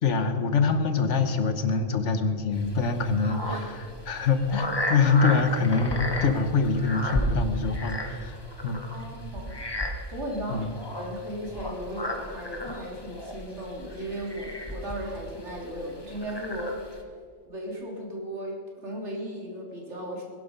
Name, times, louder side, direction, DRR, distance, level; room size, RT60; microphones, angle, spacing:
voice 1, 0.0-8.9 10.5-10.7, left 4 dB, 70° left, 8 dB, 1.4 m, -25 dB
sound 1, 2.5-17.0, equal, 20° left, 1.4 m, -34 dB
voice 2, 8.9-9.6 10.1-17.0 17.5-20.2, equal, 65° right, -2 dB, 3.5 m, -36 dB
20.5 x 11.0 x 5.3 m, 2.3 s
omnidirectional pair, 1.3 m